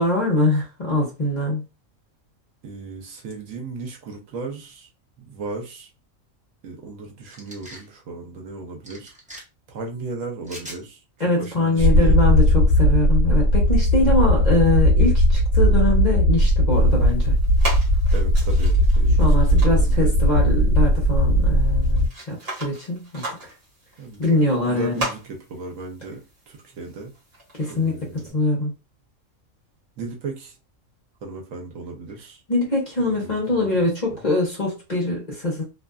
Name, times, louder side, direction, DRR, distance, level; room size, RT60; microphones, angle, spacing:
voice 1, 0.0-1.6 11.2-17.3 19.2-23.2 24.2-25.0 27.6-28.0 28.3-28.7 32.5-35.6, left 2 dB, 35° left, 0.9 m, -23 dB
voice 2, 2.6-4.9 5.2-5.9 6.6-9.1 9.7-11.0 11.4-12.2 18.1-19.2 19.5-20.1 24.0-24.3 24.6-27.1 27.7-28.4 30.0-30.6 31.2-32.4 33.0-34.2, right 3 dB, 70° right, 1.1 m, -36 dB
sound 1, 7.3-7.8 8.8-9.4 10.4-10.8, equal, 10° right, 0.4 m, -40 dB
sound 2, 11.8-22.1, equal, 65° left, 1.0 m, -17 dB
sound 3, 16.7-28.3, right 1 dB, 45° right, 1.3 m, -38 dB
2.6 x 2.4 x 2.2 m
omnidirectional pair, 1.4 m